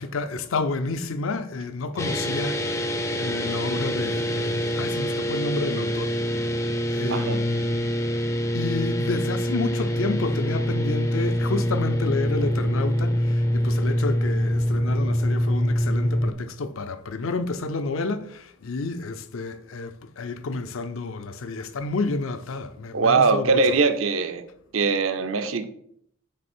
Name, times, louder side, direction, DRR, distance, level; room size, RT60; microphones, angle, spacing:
voice 1, 0.0-6.5 6.9-7.9 8.5-23.8, left 3 dB, 75° left, 0.5 m, -30 dB
sound 1, 2.0-16.3, equal, 15° left, 0.4 m, -25 dB
voice 2, 7.1-7.4 22.9-24.5 24.7-25.6, right 4 dB, 80° right, 0.6 m, -21 dB
6.7 x 3.3 x 4.4 m
head